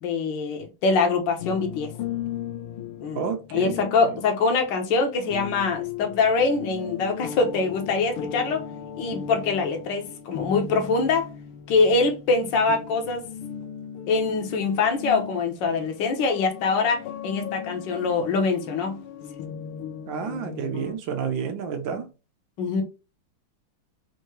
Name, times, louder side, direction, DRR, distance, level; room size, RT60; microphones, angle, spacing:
voice 1, 0.0-1.9 3.0-3.2 3.5-8.7 9.0-11.3 11.7-13.2 14.1-19.0 22.6-22.8, left 4 dB, 65° left, 1.5 m, -24 dB
sound 1, 1.4-20.9, left 9 dB, 90° left, 1.6 m, -37 dB
voice 2, 3.1-3.8 20.1-22.1, right 6 dB, 70° right, 1.4 m, -30 dB
4.5 x 2.7 x 3.0 m
omnidirectional pair, 2.3 m